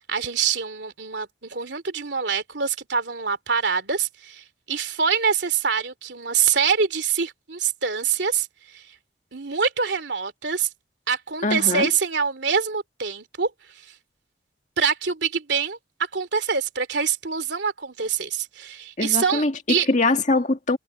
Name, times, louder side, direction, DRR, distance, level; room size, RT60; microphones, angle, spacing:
voice 1, 0.1-8.5 8.7-8.9 9.3-10.7 11.1-13.9 14.8-15.8 16.1-19.9, right 6 dB, 70° right, 2.9 m, -25 dB
voice 2, 11.4-11.9 19.0-19.5 19.9-20.8, left 2 dB, 40° left, 2.0 m, -22 dB
head